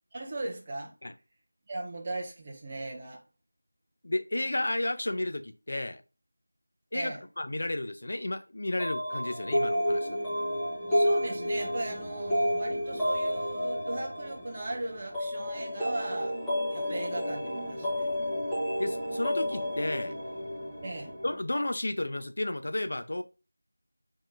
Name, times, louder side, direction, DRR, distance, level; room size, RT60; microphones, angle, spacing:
voice 1, 0.1-0.9 1.7-3.2 6.9-7.2 10.9-16.4 16.7-18.1 20.8-21.1, right 2 dB, 25° right, 0.7 m, -38 dB
voice 2, 4.0-6.0 6.9-10.3 18.8-20.2 21.2-23.2, left 1 dB, 50° left, 0.4 m, -32 dB
sound 1, 8.8-21.4, equal, ahead, 0.9 m, -31 dB
5.0 x 3.6 x 2.4 m
figure-of-eight pair, 170°, 0 cm